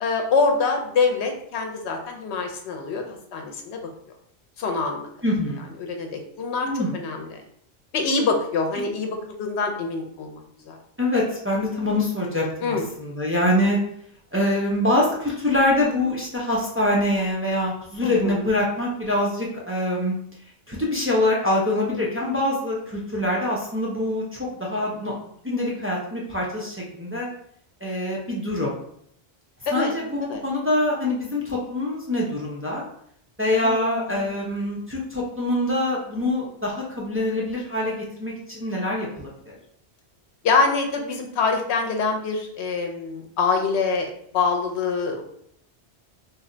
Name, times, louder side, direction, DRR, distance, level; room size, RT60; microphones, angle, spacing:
voice 1, 0.0-3.8 4.6-5.1 5.8-7.3 7.9-10.8 12.6-12.8 18.0-18.4 29.7-29.9 30.2-30.4 33.6-34.3 40.4-45.2, left 4 dB, 85° left, 3 dB, 0.9 m, -25 dB
voice 2, 5.2-5.7 6.6-6.9 11.0-13.8 14.3-20.2 20.7-25.1 25.4-27.3 27.8-28.7 29.7-32.8 33.4-39.5, left 1 dB, 20° right, -4 dB, 0.3 m, -24 dB
2.7 x 2.2 x 3.7 m, 0.68 s
omnidirectional pair, 1.1 m